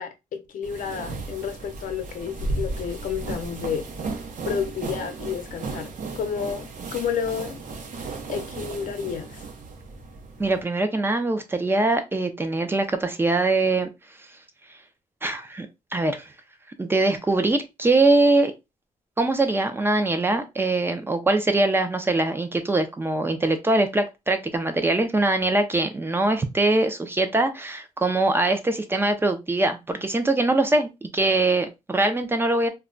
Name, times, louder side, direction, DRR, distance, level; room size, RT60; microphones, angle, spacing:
voice 1, 0.0-3.8 4.4-7.6 8.3-9.4, left 7 dB, 90° left, 0.6 m, -31 dB
sound 1, 0.6-10.6, right 3 dB, 70° right, 0.7 m, -35 dB
voice 2, 10.4-13.9 15.2-15.7 15.9-16.3 16.8-18.5 19.2-32.7, right 2 dB, 15° right, 0.4 m, -22 dB
2.2 x 2.1 x 3.7 m
wide cardioid pair, 160°, 13 cm